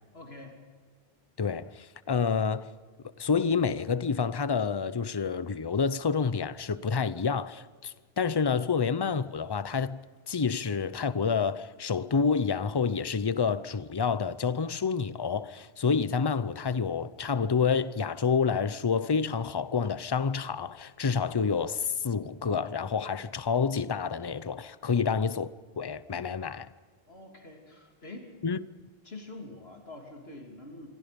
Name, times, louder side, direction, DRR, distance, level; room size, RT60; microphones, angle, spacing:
voice 1, 0.1-0.5 24.9-25.1 27.1-28.3 29.0-30.9, left 2 dB, 80° left, 3.4 m, -45 dB
voice 2, 1.4-2.7 3.2-25.5 25.8-26.7 28.4-28.6, left 5 dB, 30° left, 0.6 m, -28 dB
26.5 x 24.5 x 5.3 m
omnidirectional pair, 1.0 m